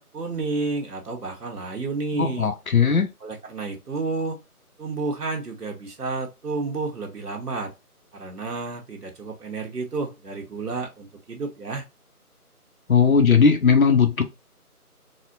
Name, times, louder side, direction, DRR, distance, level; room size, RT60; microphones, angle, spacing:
voice 1, 0.0-2.5 3.2-4.4 4.8-7.7 8.1-11.8, right 3 dB, 85° right, 1.1 m, -31 dB
voice 2, 2.2-3.1 12.9-14.2, left 6 dB, 65° left, 0.8 m, -18 dB
4.0 x 2.2 x 2.6 m
figure-of-eight pair, 175°, 46 cm